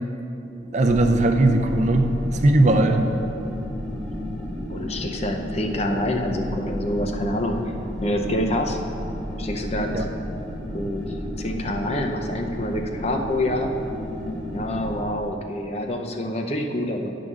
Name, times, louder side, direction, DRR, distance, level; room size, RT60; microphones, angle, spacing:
voice 1, 0.7-2.1 2.4-3.1 9.9-10.0, right 2 dB, 40° right, 4 dB, 0.5 m, -18 dB
sound 1, 0.8-15.0, left 1 dB, 5° left, 1.6 m, -32 dB
voice 2, 4.7-7.6 8.0-8.8 9.4-10.1 10.7-13.8 14.5-17.1, left 1 dB, 35° left, 3 dB, 0.6 m, -27 dB
9.6 x 3.8 x 6.1 m, 2.8 s
head